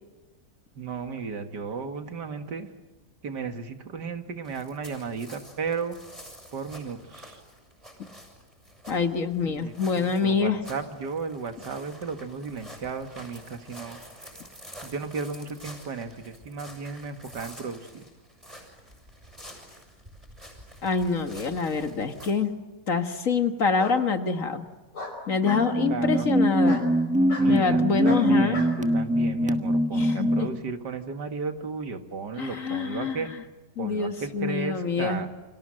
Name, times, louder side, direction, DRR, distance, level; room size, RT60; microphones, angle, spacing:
voice 1, 0.8-2.7 3.2-6.0 6.5-7.4 9.4-14.0 14.8-18.0 25.9-26.3 27.4-33.3 33.8-35.3, right 5 dB, 80° right, 8 dB, 2.4 m, -34 dB
sound 1, 4.4-22.3, equal, 20° right, 6.9 m, -48 dB
voice 2, 8.9-10.6 20.8-22.5 22.9-24.7 25.3-26.9 27.5-28.6 29.9-30.5 32.4-33.2 33.8-35.2, left 5 dB, 50° left, 8 dB, 2.0 m, -26 dB
Bark, 21.9-22.2 23.8-24.0 24.9-25.7 26.6-26.9 27.3-27.5 28.0-28.7, left 3 dB, 90° left, 5.7 m, -36 dB
sound 2, 25.3-30.6, equal, 5° right, 1.3 m, -23 dB
29.5 x 25.0 x 7.7 m, 1.3 s
omnidirectional pair, 1.8 m